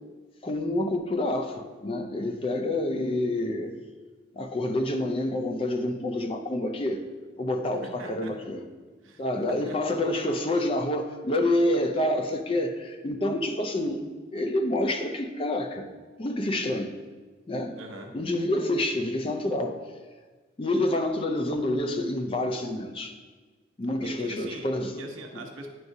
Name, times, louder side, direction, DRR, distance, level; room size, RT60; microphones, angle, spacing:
voice 1, 0.4-3.7 4.4-7.0 7.4-8.6 9.2-14.0 14.3-15.9 16.2-17.0 17.5-17.8 18.1-19.8 20.6-23.2 23.8-25.1, left 1 dB, 30° left, 5 dB, 0.4 m, -28 dB
voice 2, 8.0-8.3 9.0-9.2 9.7-10.0 17.8-18.1 24.0-24.7 24.9-25.7, right 1 dB, 85° right, 3 dB, 0.9 m, -41 dB
9.4 x 4.8 x 2.6 m, 1.4 s
head